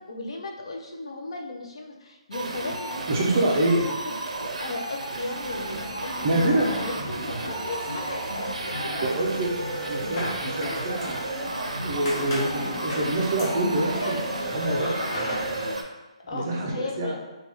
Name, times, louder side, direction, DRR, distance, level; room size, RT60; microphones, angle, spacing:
voice 1, 0.1-3.6 3.8-4.1 4.4-6.3 6.8-9.0 16.3-17.2, left 3 dB, 55° left, 1 dB, 0.4 m, -36 dB
sound 1, 2.3-15.8, right 3 dB, 80° right, 0.4 m, -34 dB
voice 2, 3.1-3.9 6.2-6.7 9.0-9.5 9.8-11.2 11.8-15.0 16.2-17.2, right 1 dB, 20° right, -2 dB, 0.4 m, -26 dB
sound 2, 5.4-15.7, equal, 70° left, 1.4 m, -35 dB
sound 3, 7.7-8.4 8.8-11.6 12.1-12.6 12.9-13.1 13.4-13.6, left 1 dB, 35° left, 0.8 m, -38 dB
3.2 x 2.2 x 3.0 m, 1.1 s
hypercardioid pair, 175°, 3 cm